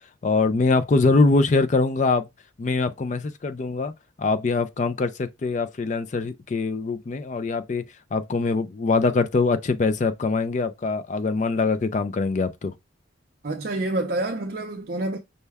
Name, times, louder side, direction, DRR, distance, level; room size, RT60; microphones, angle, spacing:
voice 1, 0.2-2.3 2.6-3.9 4.2-7.8 8.1-12.7, left 3 dB, 40° left, 0.4 m, -23 dB
voice 2, 13.4-15.2, right 2 dB, 50° right, 0.5 m, -27 dB
5.5 x 2.1 x 3.4 m
head